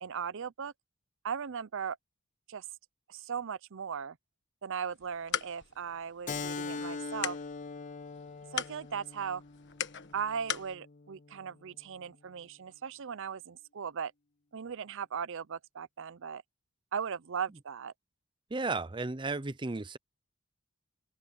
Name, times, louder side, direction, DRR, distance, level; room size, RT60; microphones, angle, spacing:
voice 1, 0.0-0.7 1.2-2.0 2.5-2.6 3.1-4.2 4.6-7.4 8.5-9.4 10.1-14.1 14.5-16.4 16.9-17.9, right 7 dB, 60° right, 0.6 m, -38 dB
sound 1, 4.9-10.7, left 9 dB, 55° left, 1.4 m, -41 dB
Keyboard (musical), 6.3-11.4, left 4 dB, 35° left, 0.6 m, -42 dB
voice 2, 18.5-20.0, right 3 dB, 20° right, 0.6 m, -34 dB
open air
head